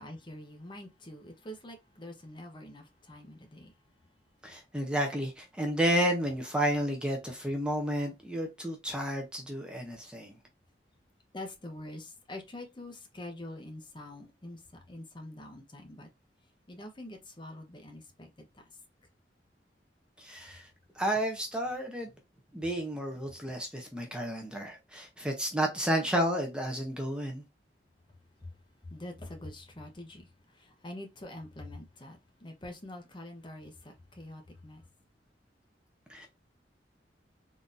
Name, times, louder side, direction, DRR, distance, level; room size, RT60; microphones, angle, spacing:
voice 1, 0.0-3.8 11.3-16.1 16.7-18.6 28.4-28.5 28.8-34.8, left 1 dB, 25° left, 0.8 m, -45 dB
voice 2, 4.4-10.3 20.2-20.7 21.0-22.1 22.5-27.4 36.1-36.3, equal, 5° right, 0.7 m, -31 dB
3.8 x 2.7 x 2.5 m
head